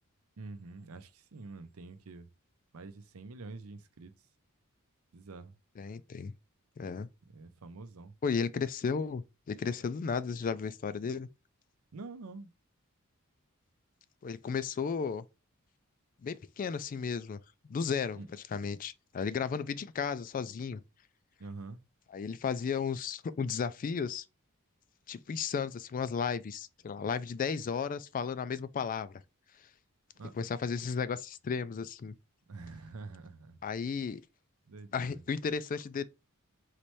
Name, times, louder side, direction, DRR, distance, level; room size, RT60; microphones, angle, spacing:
voice 1, 0.4-2.3 2.7-4.1 5.1-5.5 7.3-8.1 11.9-12.5 18.1-18.3 21.4-21.8 30.2-30.3 32.5-33.6 34.7-35.2, right 3 dB, 70° right, 0.6 m, -46 dB
voice 2, 5.8-6.3 6.8-7.1 8.2-11.3 14.2-15.2 16.2-17.4 17.6-18.2 18.5-20.8 22.1-24.2 25.1-29.2 30.3-32.1 33.6-34.2 34.9-36.0, left 6 dB, 40° left, 0.3 m, -34 dB
4.1 x 3.2 x 3.1 m
head